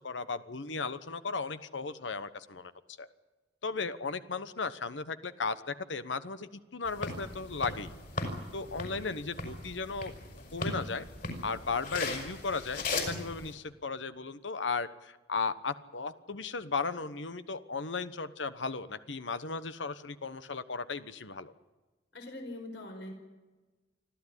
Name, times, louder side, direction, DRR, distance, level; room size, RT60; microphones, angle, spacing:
voice 1, 0.0-2.7 3.0-3.1 3.6-7.9 8.5-10.1 10.5-11.1 11.4-21.5, left 4 dB, 90° left, 13 dB, 1.1 m, -36 dB
sound 1, 6.9-13.5, left 2 dB, 50° left, 5.7 m, -38 dB
voice 2, 22.1-23.1, left 1 dB, 70° left, 4 dB, 4.9 m, -42 dB
25.5 x 14.5 x 10.0 m, 1.2 s
head